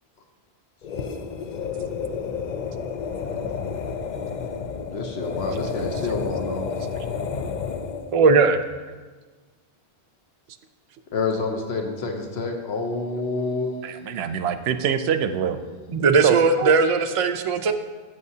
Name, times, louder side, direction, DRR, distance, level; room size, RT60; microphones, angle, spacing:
sound 1, 0.8-8.2, left 6 dB, 55° left, 0.6 m, -30 dB
voice 1, 4.9-6.7 11.1-13.8, left 3 dB, 85° left, 3 dB, 1.1 m, -28 dB
voice 2, 8.1-8.6 15.9-17.7, right 4 dB, 45° right, 7 dB, 0.4 m, -18 dB
voice 3, 13.8-15.6 16.2-16.7, right 8 dB, 85° right, 10 dB, 0.8 m, -25 dB
13.5 x 6.3 x 2.8 m, 1.4 s
omnidirectional pair, 1.0 m